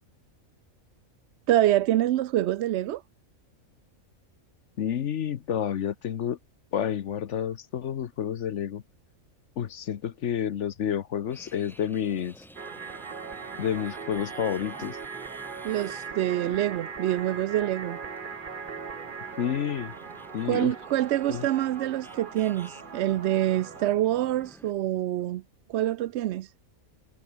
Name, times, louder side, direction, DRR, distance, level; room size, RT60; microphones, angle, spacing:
voice 1, 1.5-3.0 15.6-18.0 20.4-25.4 25.7-26.5, right 13 dB, 65° right, 0.7 m, -26 dB
voice 2, 4.8-6.4 6.7-8.8 9.6-12.3 13.6-15.0 19.4-19.9 20.3-20.7 21.3-21.5, left 9 dB, 60° left, 1.1 m, -29 dB
sound 1, 11.3-24.7, equal, ahead, 6.3 m, -52 dB
sound 2, 12.5-23.9, right 5 dB, 40° right, 1.3 m, -40 dB
omnidirectional pair, 1.4 m